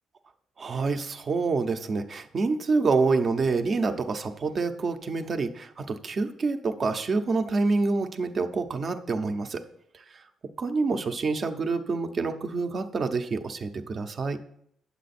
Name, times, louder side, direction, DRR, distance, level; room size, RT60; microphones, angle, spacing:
voice 1, 0.6-9.6 10.1-10.2 10.6-14.4, right 4 dB, 45° right, 7 dB, 0.8 m, -27 dB
9.3 x 7.4 x 4.3 m, 0.71 s
cardioid pair, 90°, 0 cm